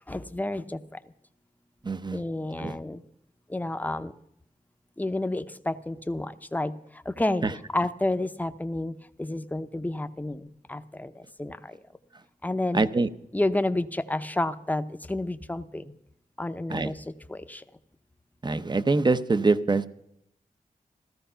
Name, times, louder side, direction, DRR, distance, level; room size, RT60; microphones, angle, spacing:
voice 1, 0.1-0.8 2.1-3.0 3.5-4.1 5.0-6.7 7.1-7.4 7.7-8.9 9.2-11.1 11.4-11.6 12.4-12.8 13.3-15.8 16.4-17.0 17.3-17.6, left 1 dB, 10° left, 10 dB, 0.7 m, -30 dB
voice 2, 1.8-2.2 2.6-2.8 7.4-7.6 12.7-13.1 16.7-16.9 18.4-19.9, right 3 dB, 30° right, 14 dB, 0.7 m, -24 dB
15.0 x 13.5 x 5.7 m, 0.76 s
wide cardioid pair, 115°, 15 cm